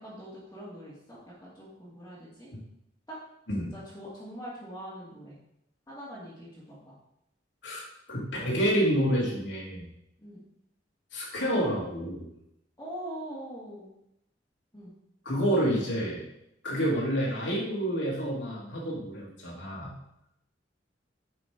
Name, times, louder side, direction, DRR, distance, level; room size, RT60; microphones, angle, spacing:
voice 1, 0.0-2.5 3.7-5.4 5.9-6.9 10.2-10.4 12.8-13.9 14.7-14.9, equal, 15° left, -11 dB, 2.5 m, -43 dB
voice 2, 7.6-9.8 11.1-12.3 15.2-16.2 16.6-19.9, equal, 85° left, -4 dB, 3.2 m, -28 dB
10.0 x 6.1 x 3.7 m, 0.81 s
head